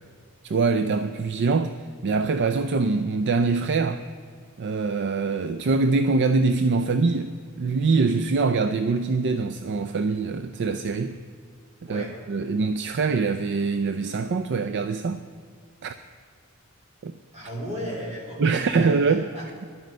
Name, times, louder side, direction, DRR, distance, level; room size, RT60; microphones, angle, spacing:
voice 1, 0.4-1.7 2.0-4.0 4.6-11.2 11.9-15.2 15.8-15.9 17.0-17.1 18.4-19.3, right 4 dB, 55° right, 11 dB, 0.4 m, -24 dB
voice 2, 17.3-19.7, equal, 30° right, -3 dB, 3.3 m, -35 dB
11.5 x 9.1 x 6.5 m, 2.2 s
head